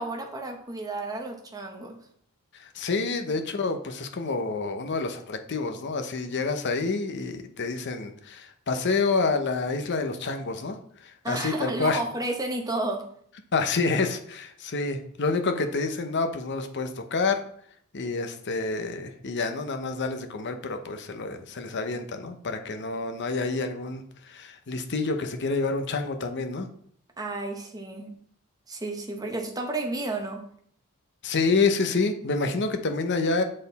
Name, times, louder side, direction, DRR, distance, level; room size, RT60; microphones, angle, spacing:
voice 1, 0.0-2.0 11.2-13.1 27.2-28.2 28.7-30.5, right 2 dB, 15° right, 3 dB, 0.9 m, -32 dB
voice 2, 2.5-10.8 11.0-12.0 13.5-17.4 17.9-26.7 31.2-33.4, left 3 dB, 55° left, 7 dB, 0.8 m, -28 dB
7.5 x 4.3 x 4.1 m, 0.64 s
head